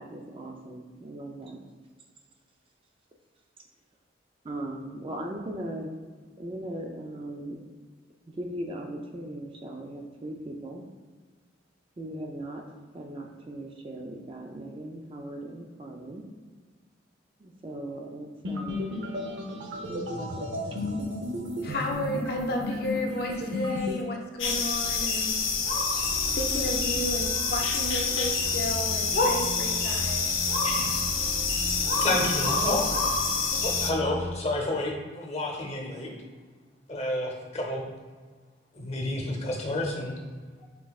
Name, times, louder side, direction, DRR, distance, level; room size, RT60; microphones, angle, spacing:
voice 1, 0.0-1.6 4.4-5.9 6.4-7.6 8.3-10.8 12.0-12.6 12.9-16.2 17.4-18.9 19.9-21.1, right 1 dB, 25° right, 2 dB, 0.3 m, -38 dB
sound 1, 18.4-24.0, left 1 dB, 65° right, 0.7 m, -33 dB
voice 2, 21.6-25.4 26.3-30.3, left 1 dB, 50° left, 1 dB, 0.5 m, -33 dB
sound 2, 24.4-33.9, left 4 dB, 85° left, 0.7 m, -27 dB
sound 3, 26.0-34.4, equal, 45° right, 1.1 m, -39 dB
voice 3, 31.9-32.9 33.5-36.1 36.9-37.8 38.7-40.1, left 1 dB, 35° left, 0 dB, 0.8 m, -30 dB
6.0 x 3.6 x 2.4 m, 1.5 s
head